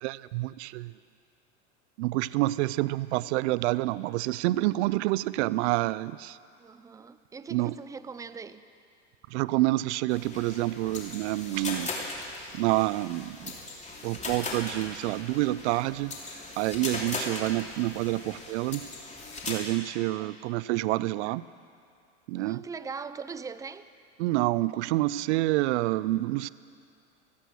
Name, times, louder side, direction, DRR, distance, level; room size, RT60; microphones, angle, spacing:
voice 1, 0.0-0.9 2.0-6.4 7.5-7.7 9.3-11.9 12.5-13.5 14.0-16.1 16.6-18.9 19.5-21.4 22.3-22.6 24.2-26.5, right 18 dB, 65° right, 0.5 m, -28 dB
voice 2, 6.6-8.6 19.9-20.5 22.3-23.9, right 5 dB, 10° right, 0.4 m, -41 dB
sound 1, 10.1-19.5, left 3 dB, 20° left, 3.0 m, -38 dB
17.0 x 14.0 x 6.2 m
hypercardioid pair, 105°, 36 cm